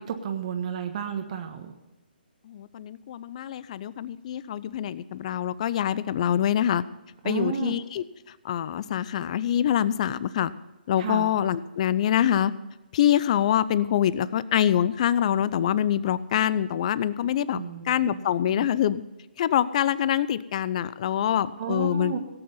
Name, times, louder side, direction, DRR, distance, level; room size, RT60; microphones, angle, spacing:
voice 1, 0.0-1.8 7.2-7.8 11.0-11.3 17.5-18.7 21.6-22.2, right 7 dB, 45° right, 5 dB, 1.4 m, -32 dB
voice 2, 2.5-6.8 7.2-8.0 8.4-10.5 10.9-12.5 12.9-19.0 19.4-22.1, left 10 dB, 40° left, 17 dB, 0.6 m, -25 dB
17.5 x 8.7 x 5.5 m, 1.0 s
hypercardioid pair, 150°, 5 cm